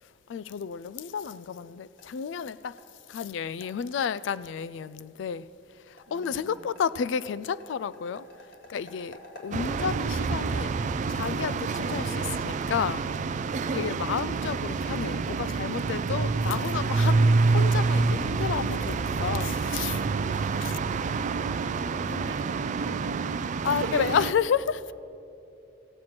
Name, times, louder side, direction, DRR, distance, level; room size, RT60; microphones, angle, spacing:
voice 1, 0.0-8.3 8.7-10.8 11.1-13.1 13.7-20.8 22.1-22.2 23.6-24.9, left 7 dB, 75° left, 0.3 m, -31 dB
sound 1, 0.9-12.4, left 1 dB, 55° left, 1.9 m, -55 dB
voice 2, 6.1-6.6 12.1-13.1 22.0-24.1, right 3 dB, 85° right, 0.9 m, -44 dB
sound 2, 9.5-24.3, right 4 dB, 40° right, 0.3 m, -27 dB
15.5 x 7.8 x 5.8 m
head